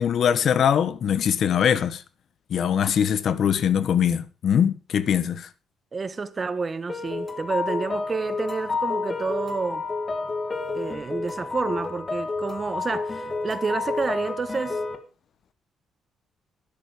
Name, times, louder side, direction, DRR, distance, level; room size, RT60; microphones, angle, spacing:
voice 1, 0.0-2.0 2.5-5.5, left 8 dB, 60° left, 1.1 m, -22 dB
voice 2, 5.9-9.8 10.7-14.8, right 4 dB, 35° right, 1.1 m, -29 dB
sound 1, 6.9-15.0, left 3 dB, 30° left, 2.2 m, -30 dB
12.0 x 10.5 x 4.9 m
cardioid pair, 90°, 0 cm